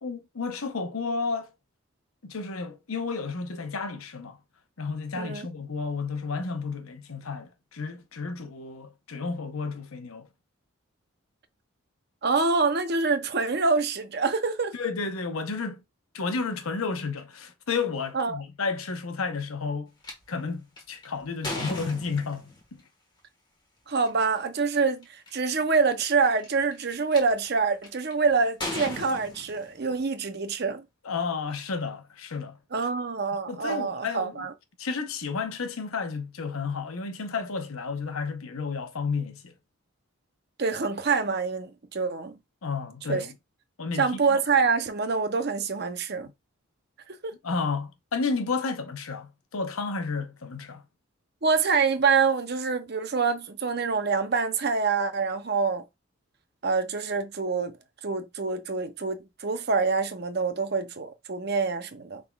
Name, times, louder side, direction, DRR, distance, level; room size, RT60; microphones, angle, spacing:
voice 1, 0.0-1.5 2.2-4.4 4.8-10.3 14.7-15.8 16.1-19.9 20.3-22.8 31.0-32.9 33.5-34.5 34.8-39.5 42.6-43.3 43.8-44.4 47.4-50.8, left 4 dB, 85° left, 0.9 m, -32 dB
voice 2, 5.2-5.5 12.2-14.7 18.1-18.4 23.9-30.8 32.7-34.5 40.6-42.3 43.1-43.3 44.0-46.3 47.1-47.3 51.4-55.8 56.6-57.7 58.0-62.2, right 4 dB, 50° right, 0.7 m, -26 dB
sound 1, 20.0-20.1 20.8-22.6 23.9-24.1 24.7-24.8 25.0-25.5 26.2-27.2 27.8-28.1 28.6-30.0, left 1 dB, 20° left, 1.5 m, -36 dB
5.9 x 3.7 x 2.3 m
head